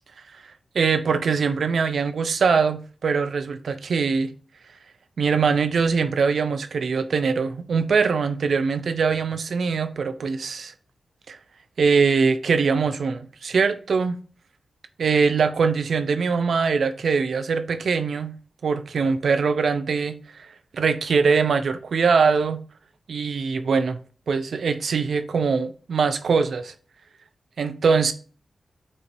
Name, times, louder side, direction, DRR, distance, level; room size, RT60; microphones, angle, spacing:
voice 1, 0.7-4.3 5.2-10.7 11.3-11.4 11.8-14.2 15.0-18.3 18.6-20.5 20.7-22.6 23.1-24.0 24.3-26.7 27.6-28.1, right 5 dB, 75° right, 0.4 m, -22 dB
6.8 x 2.7 x 2.6 m
supercardioid pair, 40°, 0 cm